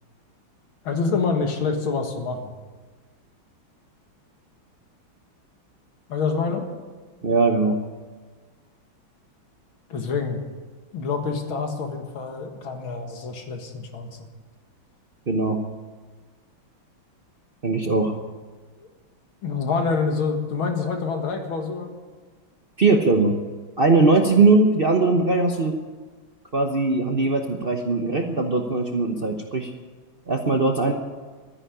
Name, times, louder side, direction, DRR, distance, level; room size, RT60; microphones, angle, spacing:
voice 1, 0.8-2.5 6.1-6.7 9.9-10.4 10.9-14.3 18.8-18.9 19.4-22.0, left 4 dB, 75° left, 4 dB, 2.5 m, -26 dB
voice 2, 7.2-7.8 15.3-15.6 17.6-18.1 22.8-23.4 23.8-25.8 26.5-29.7 30.3-30.9, right 3 dB, 40° right, 2 dB, 0.9 m, -20 dB
13.0 x 10.5 x 9.8 m, 1.4 s
omnidirectional pair, 2.3 m